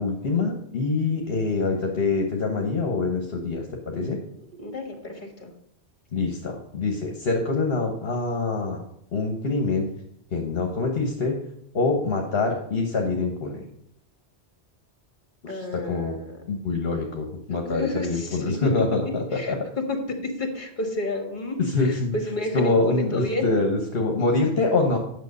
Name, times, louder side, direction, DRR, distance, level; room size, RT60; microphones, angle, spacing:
voice 1, 0.0-4.2 6.1-8.8 9.1-9.9 10.3-11.4 11.7-13.6 15.4-16.2 16.5-19.6 21.6-22.2 22.5-25.0, left 3 dB, 65° left, 2 dB, 1.3 m, -25 dB
voice 2, 4.6-5.5 15.5-16.3 17.5-18.6 19.3-19.5 19.9-23.5, left 1 dB, 45° left, 4 dB, 1.8 m, -31 dB
9.2 x 6.4 x 5.3 m, 0.74 s
omnidirectional pair, 1.1 m